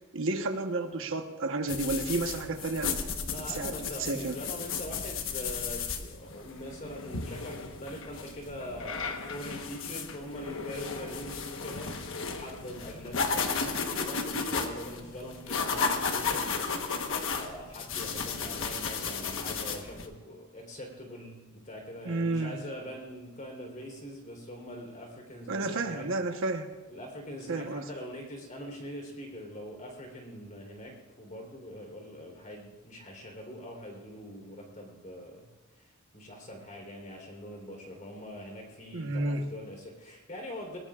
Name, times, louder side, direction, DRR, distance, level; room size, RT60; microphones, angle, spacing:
voice 1, 0.1-3.0 3.5-3.7 4.0-4.4 22.0-22.6 25.5-26.7 27.3-27.8 38.9-39.4, right 2 dB, 65° right, 5 dB, 1.1 m, -31 dB
sound 1, 1.7-20.1, left 5 dB, 65° left, 1.3 m, -34 dB
voice 2, 3.2-17.0 17.3-26.1 26.9-35.5 35.8-40.8, equal, 35° left, 1 dB, 3.8 m, -43 dB
21.0 x 20.5 x 2.5 m, 1.2 s
head